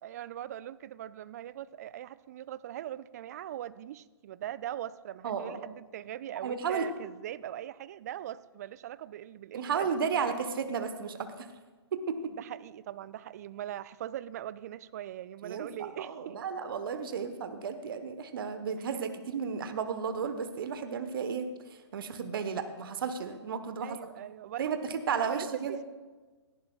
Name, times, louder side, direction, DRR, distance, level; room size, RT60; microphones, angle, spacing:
voice 1, 0.0-9.9 12.3-16.4 23.8-24.7 25.1-25.8, right 12 dB, 35° right, 17 dB, 0.4 m, -41 dB
voice 2, 5.2-5.7 6.4-6.9 9.5-11.5 11.9-12.3 15.4-15.7 16.0-21.4 21.9-24.0 24.6-24.8 25.1-25.8, right 6 dB, 50° right, 9 dB, 1.1 m, -33 dB
17.0 x 14.0 x 2.4 m, 1.3 s
figure-of-eight pair, 125°, 15 cm